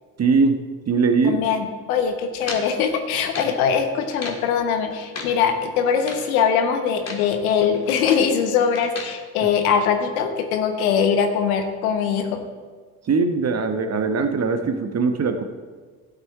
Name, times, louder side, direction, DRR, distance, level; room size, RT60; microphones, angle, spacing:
voice 1, 0.2-0.6 0.9-1.4 9.4-9.5 13.1-15.4, right 4 dB, 35° right, 7 dB, 1.2 m, -21 dB
voice 2, 1.2-12.4, left 7 dB, 75° left, 6 dB, 1.2 m, -22 dB
sound 1, 2.4-3.6 4.0-4.5 4.9-5.4 5.9-6.3 6.9-7.3 7.6-8.3 8.7-9.2, left 3 dB, 35° left, 2.1 m, -36 dB
12.5 x 8.0 x 4.6 m, 1.5 s
figure-of-eight pair, 50°, 43 cm